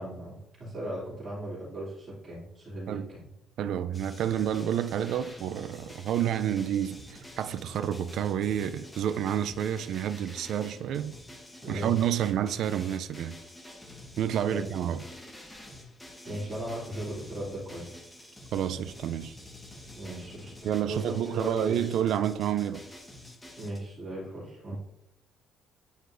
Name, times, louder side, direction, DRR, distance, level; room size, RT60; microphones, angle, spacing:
voice 1, 0.0-3.2 11.6-12.2 14.5-14.7 16.2-18.1 20.0-21.9 23.6-24.8, right 1 dB, 30° right, 2.7 m, -37 dB
voice 2, 3.6-11.1 11.7-13.4 14.2-15.0 18.5-19.3 20.6-22.8, right 10 dB, 65° right, 0.3 m, -29 dB
sound 1, 3.9-23.8, left 1 dB, 10° left, 1.0 m, -48 dB
9.7 x 4.9 x 2.6 m
cardioid pair, 160°, 0 cm